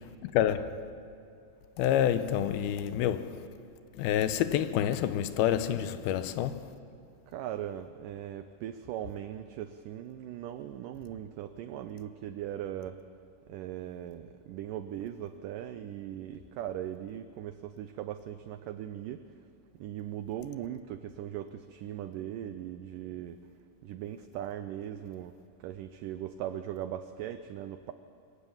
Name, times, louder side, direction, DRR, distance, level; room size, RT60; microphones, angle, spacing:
voice 1, 0.2-0.8 1.8-3.5 4.0-6.7, left 10 dB, 80° left, 2.6 m, -28 dB
voice 2, 7.3-13.0 13.5-19.3 19.8-23.4 23.8-27.9, right 11 dB, 85° right, 1.9 m, -39 dB
24.0 x 16.5 x 7.3 m
omnidirectional pair, 4.6 m